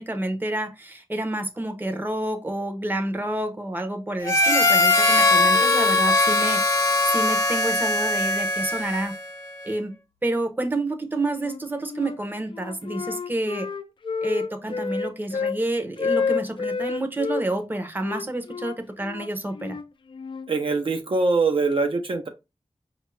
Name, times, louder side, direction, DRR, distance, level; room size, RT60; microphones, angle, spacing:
voice 1, 0.0-9.1 9.6-9.9 10.2-13.7 14.2-19.8, right 1 dB, 20° right, 0.7 m, -29 dB
Harmonica, 4.2-9.3, left 2 dB, 35° left, 0.8 m, -20 dB
Wind instrument woodwind instrument, 11.3-12.2 12.5-15.6 16.0-17.4 18.0-20.5, left 5 dB, 60° left, 0.4 m, -29 dB
voice 2, 20.5-22.3, right 3 dB, 65° right, 0.6 m, -23 dB
5.2 x 2.4 x 3.1 m
wide cardioid pair, 90°, 10 cm